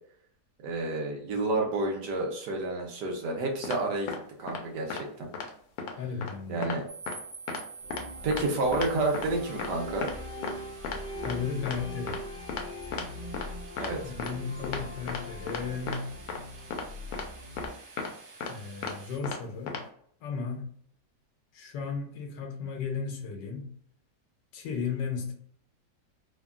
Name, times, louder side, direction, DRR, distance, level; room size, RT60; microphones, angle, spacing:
voice 1, 0.6-5.3 6.5-6.9 8.2-10.1 13.8-14.1, right 2 dB, 75° right, 1 dB, 1.3 m, -30 dB
sound 1, 3.6-3.8 4.1-4.2 4.5-4.6 4.9-5.0 5.3-5.5 5.8-5.9 6.2-6.3 6.6-6.8 7.1-7.2 7.5-7.6 7.9-8.0 8.3-8.4 8.7-8.9 9.1-9.3 9.6-9.7 10.0-10.1 10.4-10.5 10.8-11.0 11.2-11.3 11.7-11.8 12.1-12.2 12.5-12.6 12.9-13.0 13.3-13.5 13.8-13.9 14.2-14.3 14.6-14.8 15.1-15.2 15.5-15.6 15.9-16.0 16.3-16.4 16.7-16.8 17.1-17.2 17.6-17.7 18.0-18.1 18.4-18.5 18.8-18.9 19.2-19.4 19.7-19.8, left 5 dB, 70° left, 1.0 m, -34 dB
voice 2, 6.0-6.8 11.2-12.2 14.0-16.1 18.5-19.8 20.2-20.7 21.5-23.7 24.5-25.3, left 5 dB, 90° left, 3 dB, 1.4 m, -35 dB
sound 2, 6.9-19.2, right 4 dB, 50° right, 1.1 m, -49 dB
sound 3, 7.8-17.7, left 1 dB, 40° left, 0.8 m, -41 dB
3.4 x 2.2 x 2.3 m, 0.63 s
omnidirectional pair, 1.8 m